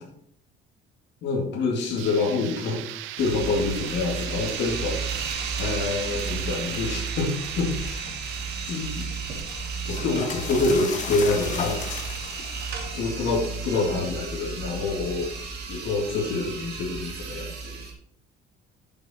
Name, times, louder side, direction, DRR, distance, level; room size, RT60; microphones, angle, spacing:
voice 1, 1.2-2.8 3.2-8.0 8.7-9.1 9.9-11.8 12.9-15.3 15.7-17.9, left 3 dB, 55° left, -2 dB, 2.3 m, -27 dB
sound 1, 2.0-11.7, right 13 dB, 70° right, 0.6 m, -39 dB
sound 2, 3.2-17.9, right 5 dB, 50° right, 2.4 m, -33 dB
sound 3, 7.7-13.2, left 5 dB, 35° left, 1.1 m, -37 dB
10.5 x 6.2 x 4.3 m, 0.71 s
cardioid pair, 175°, 21 cm